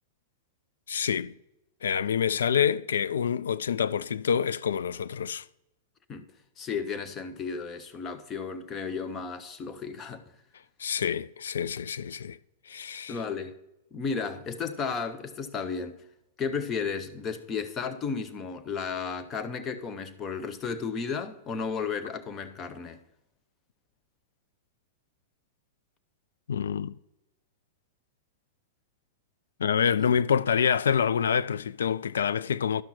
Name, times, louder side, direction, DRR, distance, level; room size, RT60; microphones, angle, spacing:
voice 1, 0.9-1.3 1.8-5.4 10.8-12.4 12.7-13.2 26.5-26.9 29.6-32.8, left 7 dB, 75° left, 0.3 m, -27 dB
voice 2, 6.6-10.2 13.1-13.6 13.9-15.9 16.4-23.0, left 5 dB, 30° left, 1.0 m, -33 dB
12.0 x 5.8 x 4.3 m
figure-of-eight pair, 100°, 0 cm